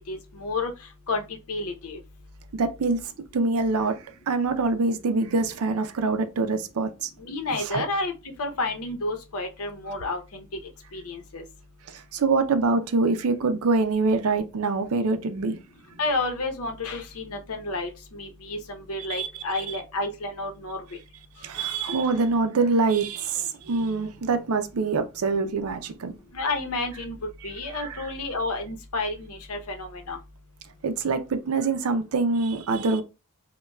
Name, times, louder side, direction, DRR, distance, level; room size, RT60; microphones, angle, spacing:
voice 1, 0.1-0.7 1.1-1.2 1.5-2.0 7.2-8.1 8.4-10.4 10.9-11.4 16.0-20.8 26.3-27.2 27.4-30.2, left 2 dB, 75° left, 0.8 m, -30 dB
voice 2, 2.5-3.0 3.3-4.0 4.3-7.1 7.6-7.8 11.9-15.6 19.1-19.3 21.4-26.2 27.7-28.1 30.8-33.0, right 3 dB, 75° right, 0.5 m, -25 dB
5.3 x 2.2 x 2.3 m
head